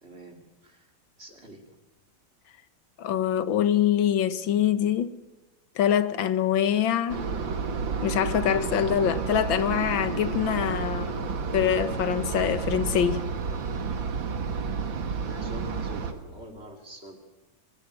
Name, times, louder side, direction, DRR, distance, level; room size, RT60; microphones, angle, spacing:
voice 1, 0.0-0.9 1.2-1.6 15.2-17.2, right 1 dB, 30° right, 3.5 m, -44 dB
voice 2, 3.0-5.2 5.8-7.3 8.0-11.2 11.5-13.3, left 9 dB, 90° left, 1.9 m, -24 dB
sound 1, 7.1-16.1, right 5 dB, 80° right, 2.5 m, -31 dB
24.0 x 20.0 x 8.0 m
omnidirectional pair, 2.1 m